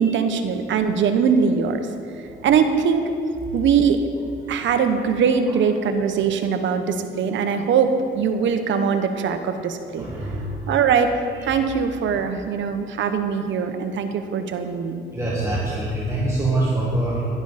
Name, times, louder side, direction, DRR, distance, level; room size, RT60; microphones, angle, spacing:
voice 1, 0.0-1.9 2.4-3.1 3.5-4.0 4.5-10.0 10.7-11.1 11.4-15.0, right 6 dB, 70° right, 7 dB, 1.0 m, -21 dB
voice 2, 10.0-10.6 11.3-11.5 15.1-17.3, right 2 dB, 15° right, -6 dB, 2.0 m, -24 dB
11.5 x 11.0 x 4.2 m, 2.5 s
cardioid pair, 90°, 20 cm